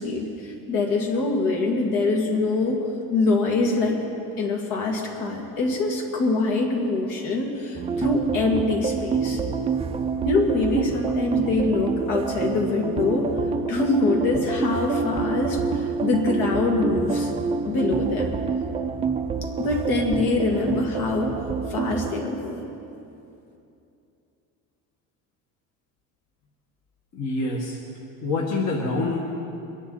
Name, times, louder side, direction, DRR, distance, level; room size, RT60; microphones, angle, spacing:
voice 1, 0.0-2.8 3.1-4.0 4.4-9.4 10.2-13.3 13.7-17.3 17.6-18.3 19.6-21.4 21.7-22.7, left 3 dB, 70° left, 0 dB, 2.5 m, -24 dB
sound 1, 7.7-22.1, right 5 dB, 20° right, 0.4 m, -27 dB
voice 2, 27.1-27.8 28.2-29.2, left 3 dB, 50° left, -2 dB, 1.7 m, -26 dB
22.5 x 11.0 x 4.1 m, 2.7 s
cardioid pair, 155°, 35 cm